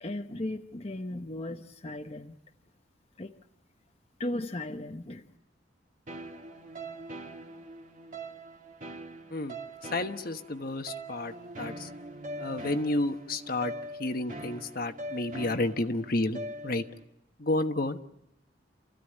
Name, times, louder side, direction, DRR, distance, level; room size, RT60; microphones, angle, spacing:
voice 1, 0.0-2.4 3.2-3.3 4.2-5.3, left 1 dB, 35° left, 1.0 m, -36 dB
sound 1, 6.1-17.0, right 1 dB, 45° right, 2.3 m, -42 dB
voice 2, 9.8-11.9 12.4-13.7 14.0-16.8 17.4-18.0, left 2 dB, 50° left, 1.3 m, -31 dB
28.5 x 15.0 x 10.0 m
head